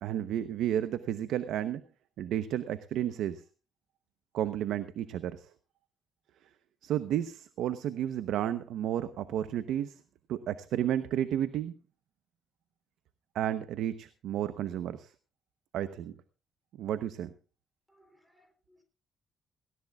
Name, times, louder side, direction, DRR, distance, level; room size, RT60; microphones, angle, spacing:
voice 1, 0.0-1.8 2.2-3.4 4.3-5.5 6.8-10.0 10.3-11.7 13.3-15.1 15.7-16.1 16.8-17.3, right 11 dB, 80° right, 12 dB, 0.9 m, -32 dB
voice 2, 17.9-18.8, equal, 5° right, 8 dB, 3.7 m, -66 dB
18.0 x 17.5 x 2.4 m, 0.33 s
cardioid pair, 90°, 0 cm